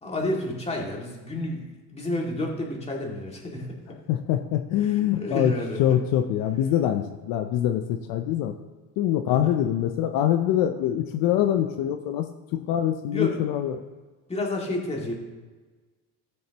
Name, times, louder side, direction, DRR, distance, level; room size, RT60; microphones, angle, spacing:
voice 1, 0.0-3.7 4.8-6.0 9.3-9.6 13.1-13.4 14.3-15.1, left 1 dB, 20° left, -1 dB, 2.2 m, -30 dB
voice 2, 4.1-5.5 5.8-8.5 9.0-12.3 12.5-13.8, left 11 dB, 70° left, 7 dB, 0.7 m, -24 dB
14.5 x 6.4 x 2.9 m, 1.3 s
cardioid pair, 110°, 35 cm